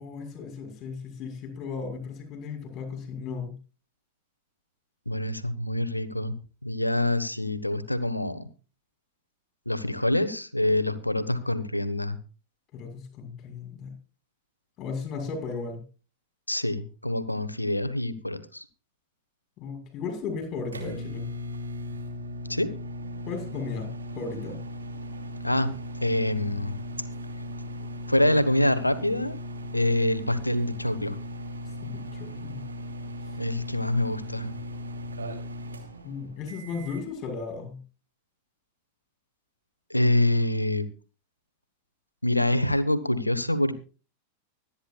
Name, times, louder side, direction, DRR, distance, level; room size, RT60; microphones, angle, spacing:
voice 1, 0.0-3.5 12.7-13.9 14.8-15.8 19.6-21.3 23.3-23.9 24.2-24.6 31.8-32.6 36.0-37.8, left 5 dB, 35° left, 5 dB, 6.0 m, -35 dB
voice 2, 5.1-6.3 6.6-8.5 9.7-12.2 16.5-18.6 22.5-22.7 25.4-25.7 26.0-26.8 28.1-29.4 29.7-31.2 33.4-34.5 39.9-40.9 42.2-43.7, left 1 dB, 85° left, 14 dB, 1.3 m, -25 dB
sound 1, 20.2-37.1, left 1 dB, 75° right, 2.8 m, -37 dB
24.5 x 10.0 x 2.4 m, 0.35 s
figure-of-eight pair, 90°, 0 cm